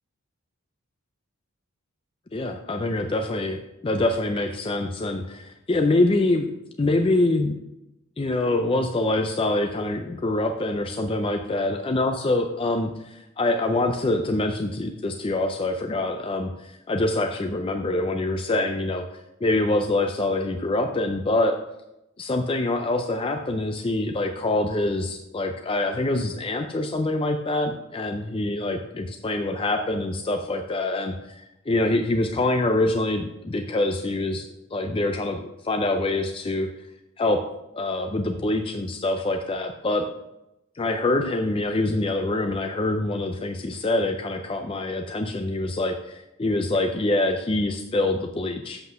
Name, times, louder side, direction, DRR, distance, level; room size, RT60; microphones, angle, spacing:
voice 1, 2.3-6.5 6.8-7.6 8.2-19.0 19.4-21.6 22.2-36.7 37.2-37.4 37.7-40.1 40.8-48.8, left 2 dB, 25° left, 5 dB, 0.4 m, -25 dB
7.5 x 5.9 x 5.6 m, 0.90 s
head